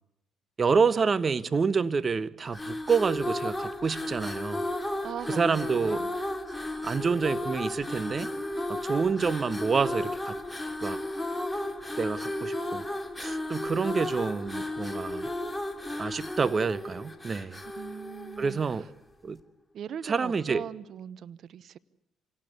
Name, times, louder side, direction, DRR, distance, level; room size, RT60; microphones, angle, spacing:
voice 1, 0.6-4.6 5.3-6.0 6.8-8.3 8.7-10.3 10.8-11.0 12.0-12.8 13.2-15.3 16.0-17.6 18.4-18.9 19.2-19.4 20.0-20.6, right 5 dB, 40° right, 1.1 m, -28 dB
sound 1, 2.5-18.9, left 1 dB, 15° left, 3.0 m, -34 dB
voice 2, 5.0-6.1 17.7-18.9 19.7-21.8, right 9 dB, 60° right, 0.9 m, -40 dB
26.0 x 18.5 x 8.3 m
hypercardioid pair, 55°, 0 cm